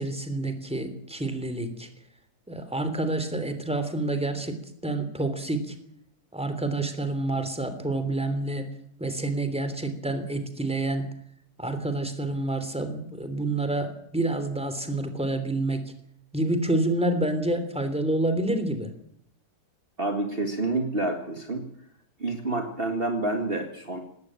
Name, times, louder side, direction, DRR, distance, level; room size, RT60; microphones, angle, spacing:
voice 1, 0.0-1.9 2.5-5.7 6.3-8.7 9.0-11.1 11.6-15.8 16.3-18.9, right 2 dB, 5° right, 9 dB, 3.1 m, -28 dB
voice 2, 20.0-21.7 22.2-24.0, right 2 dB, 35° right, 4 dB, 2.2 m, -28 dB
19.0 x 18.0 x 9.0 m, 0.70 s
omnidirectional pair, 1.8 m